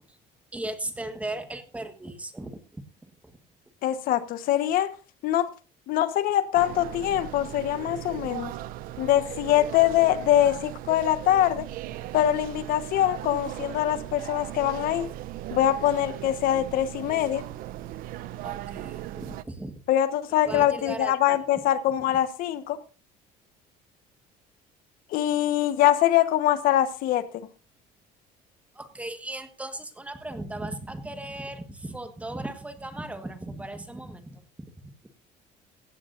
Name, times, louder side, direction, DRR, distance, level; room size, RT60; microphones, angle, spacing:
voice 1, 0.5-3.4 18.4-19.7 20.4-21.4 28.7-34.7, right 1 dB, 10° right, 8 dB, 1.5 m, -37 dB
voice 2, 3.8-4.9 5.2-5.5 5.9-8.5 9.0-11.6 12.1-15.1 15.5-17.4 19.9-22.8 25.1-27.2, left 12 dB, 65° left, 12 dB, 1.3 m, -23 dB
sound 1, 6.5-19.4, right 14 dB, 65° right, 0.7 m, -38 dB
17.0 x 15.5 x 2.6 m, 0.34 s
cardioid pair, 155°, 16 cm